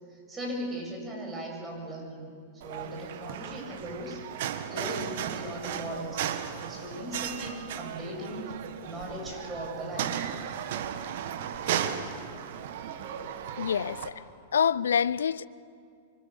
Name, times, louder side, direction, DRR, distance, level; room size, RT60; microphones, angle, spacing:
voice 1, 0.3-2.3 2.6-4.2 4.7-6.3 6.6-8.5 8.8-10.1, right 1 dB, 15° right, 7.7 m, -38 dB
sound 1, 2.6-14.1, right 9 dB, 60° right, 1.7 m, -35 dB
voice 2, 13.6-14.2 14.5-15.5, left 7 dB, 80° left, 0.5 m, -26 dB
25.0 x 24.5 x 7.1 m
hypercardioid pair, 105°, 0 cm